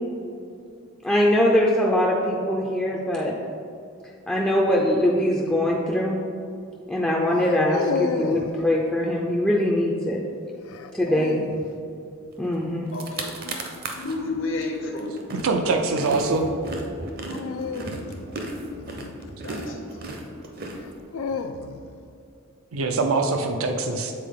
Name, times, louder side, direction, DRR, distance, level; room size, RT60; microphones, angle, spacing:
voice 1, 1.0-3.3 4.3-6.2 6.9-10.2 10.9-11.4 12.4-12.9, left 1 dB, 5° left, -4 dB, 0.4 m, -22 dB
sound 1, 5.5-5.8 7.3-8.6 10.7-11.7 14.1-14.5 17.3-19.7 20.7-22.0, left 4 dB, 85° left, 0.4 m, -32 dB
sound 2, 12.5-12.6 12.9-14.2 14.6-21.4, right 2 dB, 45° right, 0.7 m, -35 dB
voice 2, 12.9-13.6 13.9-15.1 19.4-19.8, left 3 dB, 65° left, 0 dB, 0.9 m, -31 dB
voice 3, 15.4-16.5 22.7-24.1, right 3 dB, 85° right, 5 dB, 0.5 m, -23 dB
7.4 x 4.2 x 3.6 m, 2.4 s
head